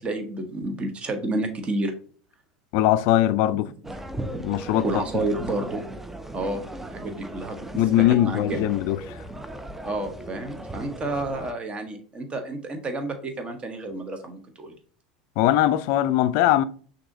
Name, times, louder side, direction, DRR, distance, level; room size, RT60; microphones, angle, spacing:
voice 1, 0.0-1.9 4.8-5.8 6.3-7.6 8.0-8.7 9.8-14.7, right 2 dB, 25° right, 1.1 m, -30 dB
voice 2, 2.7-3.7 4.4-4.8 7.7-9.2 15.4-16.6, left 13 dB, 55° left, 0.4 m, -21 dB
sound 1, 3.8-11.5, right 1 dB, 5° right, 0.4 m, -37 dB
5.9 x 2.8 x 2.7 m
hypercardioid pair, 85°, 4 cm